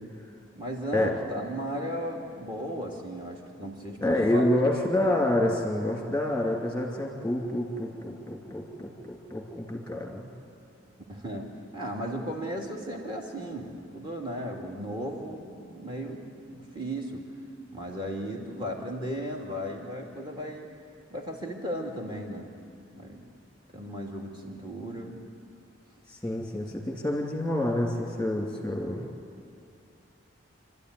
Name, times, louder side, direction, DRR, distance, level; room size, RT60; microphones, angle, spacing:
voice 1, 0.5-4.5 11.1-11.5 11.7-16.2 16.5-17.2 17.7-20.7 21.1-22.5 23.0-23.2 23.7-25.2, equal, 25° right, 0 dB, 2.7 m, -35 dB
voice 2, 4.0-10.3 26.1-29.0, left 1 dB, 5° left, 0 dB, 2.7 m, -28 dB
28.0 x 13.0 x 9.7 m, 2.4 s
head